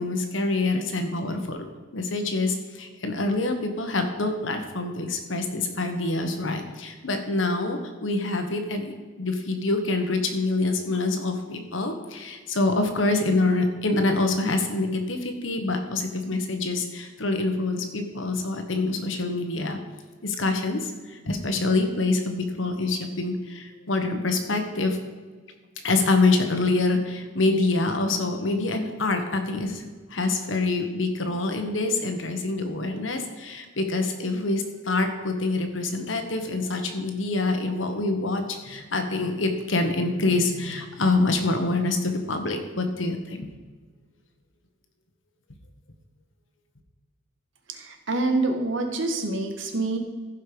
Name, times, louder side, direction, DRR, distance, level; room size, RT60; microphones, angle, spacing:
voice 1, 0.0-1.7 1.9-19.8 20.2-25.0 25.8-29.8 30.1-43.5, left 2 dB, 80° left, 6 dB, 1.4 m, -26 dB
voice 2, 47.7-50.0, right 2 dB, 85° right, 4 dB, 1.5 m, -26 dB
15.0 x 5.6 x 5.1 m, 1.5 s
head